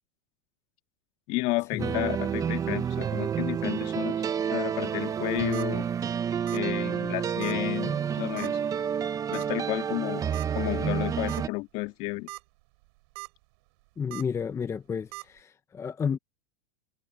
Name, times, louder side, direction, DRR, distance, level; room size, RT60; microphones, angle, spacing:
voice 1, 1.3-4.2 4.5-5.9 6.5-8.6 9.3-10.2 10.5-12.3, left 22 dB, 50° left, 1.9 m, -32 dB
sound 1, 1.8-11.5, right 8 dB, 20° right, 1.1 m, -29 dB
sound 2, 5.3-5.7 6.5-6.7 7.0-7.1 7.4-7.6 8.4-8.7 9.3-9.5 10.3-10.5 10.9-11.0 11.3-11.4 12.1-12.4 12.8-13.3 14.1-14.2 15.1-15.2, right 29 dB, 60° right, 5.1 m, -40 dB
voice 2, 14.0-16.2, left 6 dB, 20° left, 1.1 m, -32 dB
hypercardioid pair, 115°, 15 cm